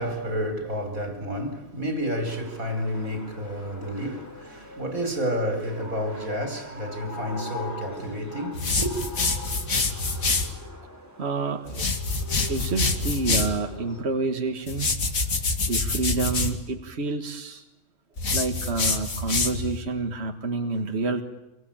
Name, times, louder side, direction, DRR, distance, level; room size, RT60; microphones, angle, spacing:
voice 1, 0.0-9.0, equal, 90° right, 4.5 m, -30 dB
sound 1, 2.3-14.0, left 1 dB, 10° left, 3.6 m, -42 dB
sound 2, 8.5-10.5 11.7-13.6 14.7-16.6 18.2-19.8, left 3 dB, 80° left, 2.7 m, -26 dB
voice 2, 11.2-11.9 12.5-14.9 15.6-17.6 18.3-21.2, right 3 dB, 50° right, 1.9 m, -28 dB
27.0 x 23.5 x 8.8 m
omnidirectional pair, 1.4 m